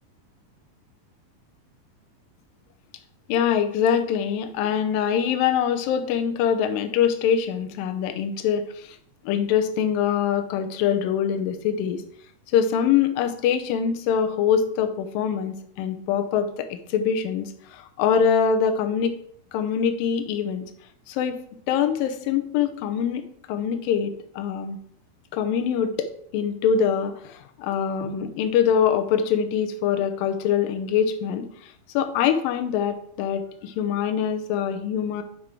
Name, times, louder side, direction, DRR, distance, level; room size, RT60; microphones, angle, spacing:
voice 1, 3.3-9.0 9.3-12.0 12.5-19.2 19.5-20.7 21.1-21.4 21.7-23.2 23.5-24.8 25.3-35.2, left 8 dB, 80° left, 8 dB, 2.4 m, -24 dB
9.0 x 5.5 x 3.4 m, 0.66 s
omnidirectional pair, 4.1 m